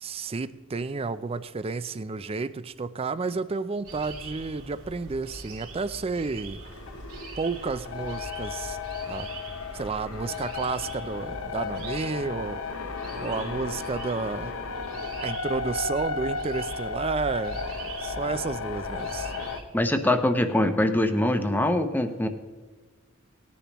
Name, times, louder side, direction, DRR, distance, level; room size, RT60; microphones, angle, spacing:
voice 1, 0.0-6.6 7.4-8.8 9.1-9.3 9.7-12.6 13.2-14.5 15.2-17.6 18.0-19.3, right 4 dB, 30° right, 14 dB, 0.4 m, -31 dB
sound 1, 3.8-19.6, right 2 dB, 85° right, 2.9 m, -42 dB
sound 2, 6.6-19.6, left 5 dB, 75° left, 0.8 m, -34 dB
voice 2, 19.7-22.3, left 1 dB, 10° left, 7 dB, 0.8 m, -23 dB
18.5 x 10.0 x 3.0 m, 1.3 s
head